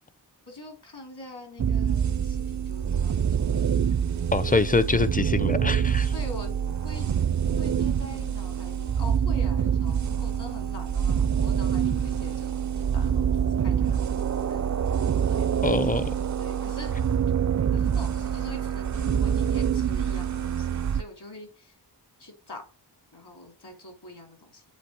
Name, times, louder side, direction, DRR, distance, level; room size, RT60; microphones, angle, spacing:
voice 1, 0.5-3.8 6.1-7.1 7.4-15.6 16.4-16.9 17.7-21.8 22.2-22.7 23.1-24.6, left 2 dB, 70° left, 2.3 m, -44 dB
sound 1, 1.6-21.0, right 8 dB, 45° right, 0.4 m, -26 dB
voice 2, 4.3-6.1 15.6-16.1, left 3 dB, 20° left, 0.4 m, -24 dB
8.3 x 2.8 x 4.5 m
wide cardioid pair, 50°, 42 cm